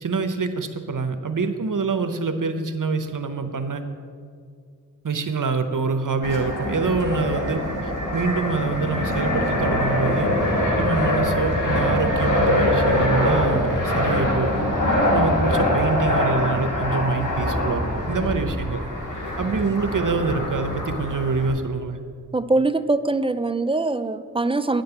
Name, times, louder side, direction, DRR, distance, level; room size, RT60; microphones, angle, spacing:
voice 1, 0.0-3.8 5.0-10.3 10.8-14.5 15.1-18.8 19.4-22.0, right 4 dB, 85° right, 8 dB, 0.7 m, -25 dB
Fixed-wing aircraft airplane, 6.2-21.5, left 1 dB, 75° left, 1.7 m, -23 dB
voice 2, 22.3-24.8, right 2 dB, 20° right, 12 dB, 0.4 m, -22 dB
8.9 x 5.3 x 7.9 m, 2.2 s
wide cardioid pair, 50°, 31 cm